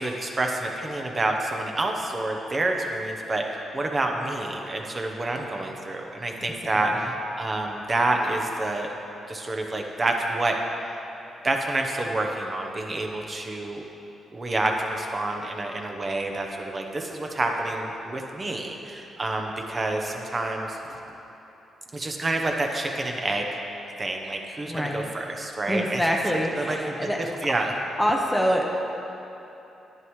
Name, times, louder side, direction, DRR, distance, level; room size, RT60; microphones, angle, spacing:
voice 1, 0.0-8.9 9.3-10.6 11.4-13.8 14.3-21.0 21.9-23.4 24.0-26.1 26.3-27.7, right 2 dB, 30° right, 2 dB, 0.9 m, -28 dB
voice 2, 24.7-25.1 25.7-27.2 28.0-28.7, equal, 5° left, 0 dB, 0.8 m, -25 dB
10.5 x 9.5 x 3.2 m, 3.0 s
cardioid pair, 95°, 0 cm